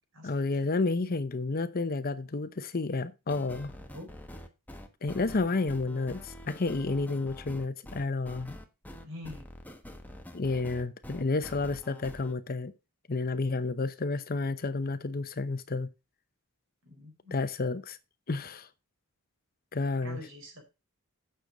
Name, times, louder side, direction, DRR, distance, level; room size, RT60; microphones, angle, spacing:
voice 1, 0.2-3.7 5.0-8.6 10.3-12.7 13.1-15.9 17.3-18.0 18.3-18.7 19.7-20.2, left 3 dB, 40° left, 0.7 m, -31 dB
sound 1, 3.3-12.3, left 1 dB, 10° left, 1.2 m, -46 dB
voice 2, 3.8-4.1 9.0-9.5 16.9-17.4 20.0-20.6, left 1 dB, 60° right, 4.5 m, -45 dB
9.0 x 6.7 x 5.0 m
head